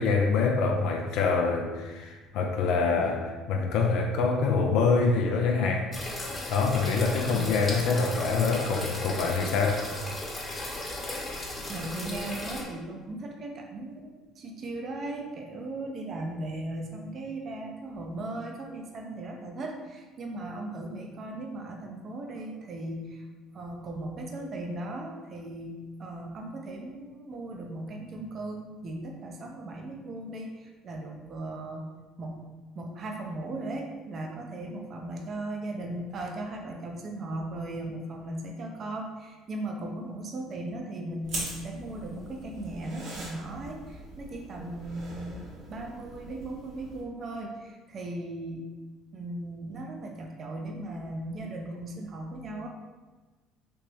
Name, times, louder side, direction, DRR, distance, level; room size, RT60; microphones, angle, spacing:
voice 1, 0.0-5.9 6.5-9.9, left 4 dB, 70° left, 2 dB, 0.4 m, -25 dB
sound 1, 5.9-12.6, left 2 dB, 25° left, 0.9 m, -36 dB
voice 2, 7.2-7.6 11.6-23.3 23.5-31.9 32.2-48.7 49.1-52.7, right 2 dB, 50° right, 1 dB, 0.5 m, -37 dB
sound 2, 41.2-47.0, right 2 dB, 65° right, 1.2 m, -42 dB
3.4 x 2.8 x 3.0 m, 1.2 s
hypercardioid pair, 65°, 0 cm